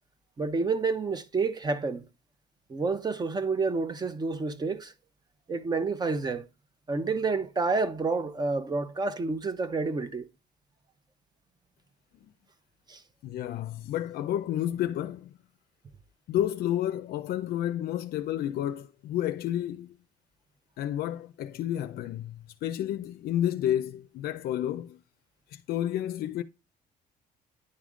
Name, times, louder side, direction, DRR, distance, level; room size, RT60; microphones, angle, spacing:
voice 1, 0.4-2.1 2.7-4.9 5.5-6.5 6.9-10.3 12.9-13.0, right 4 dB, 25° right, 0.7 m, -29 dB
voice 2, 13.2-15.4 16.3-19.9 20.8-25.0 25.5-26.4, left 11 dB, 65° left, 0.4 m, -30 dB
9.7 x 3.5 x 3.7 m
cardioid pair, 110°, 17 cm